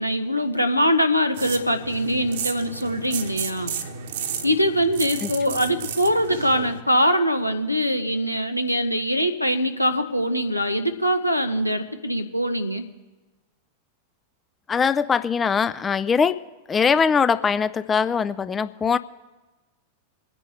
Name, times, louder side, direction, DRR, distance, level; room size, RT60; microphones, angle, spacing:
voice 1, 0.0-3.7 4.4-12.8, equal, 90° left, 6 dB, 0.9 m, -23 dB
sound 1, 1.3-6.8, right 7 dB, 60° right, 1.1 m, -33 dB
voice 2, 14.7-16.4 16.7-19.0, left 6 dB, 20° left, 15 dB, 0.4 m, -21 dB
24.5 x 9.9 x 3.4 m, 1.2 s
figure-of-eight pair, 90°, 0 cm